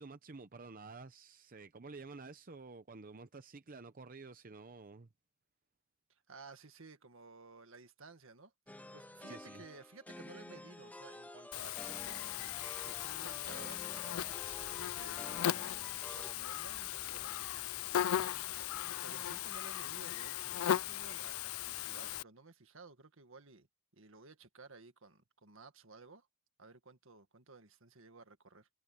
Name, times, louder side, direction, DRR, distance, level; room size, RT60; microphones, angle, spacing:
voice 1, 0.0-5.1 9.3-9.6, right 3 dB, 40° right, 0.7 m, -51 dB
voice 2, 6.1-8.5 8.8-12.2 12.6-14.4 14.7-15.2 15.5-17.5 17.8-23.7 23.9-26.3 26.6-28.7, right 3 dB, 70° right, 1.8 m, -56 dB
sound 1, 8.7-16.3, left 1 dB, 10° left, 0.8 m, -51 dB
Buzz, 11.5-22.2, left 11 dB, 80° left, 0.4 m, -38 dB
head